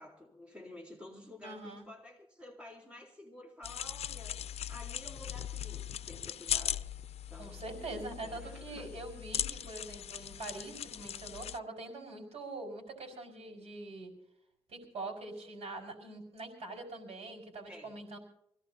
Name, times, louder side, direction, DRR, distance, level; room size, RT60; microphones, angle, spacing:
voice 1, 0.0-4.4 4.7-6.8 7.3-7.7 8.2-8.9 17.7-17.9, left 1 dB, 10° right, 0 dB, 4.0 m, -51 dB
voice 2, 1.4-1.8 7.4-14.1 14.7-18.2, right 2 dB, 85° right, 2 dB, 5.1 m, -44 dB
sound 1, 3.6-11.6, left 10 dB, 80° left, 0.5 m, -39 dB
25.5 x 17.0 x 2.8 m, 0.73 s
wide cardioid pair, 115°, 10 cm